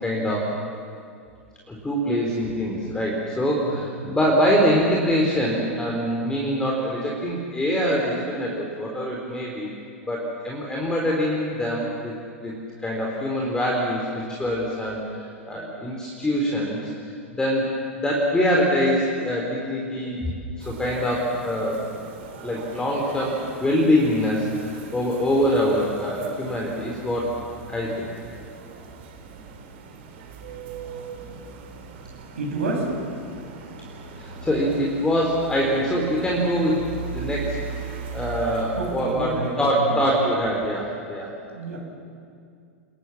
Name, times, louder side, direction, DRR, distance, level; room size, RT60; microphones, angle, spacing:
voice 1, 0.0-0.5 1.7-9.7 10.0-12.1 12.4-12.5 12.8-15.0 15.4-16.9 17.3-17.7 18.0-20.2 20.7-21.8 22.4-24.5 24.9-27.4 27.7-28.1 34.2-37.6 38.1-41.3, equal, 10° left, -3 dB, 4.3 m, -24 dB
sound 1, 20.6-39.7, right 4 dB, 55° right, 4.0 m, -39 dB
voice 2, 32.3-32.9 38.7-40.0 41.5-41.8, right 3 dB, 75° right, 0 dB, 7.1 m, -29 dB
29.5 x 21.0 x 7.4 m, 2.3 s
figure-of-eight pair, 95°, 7 cm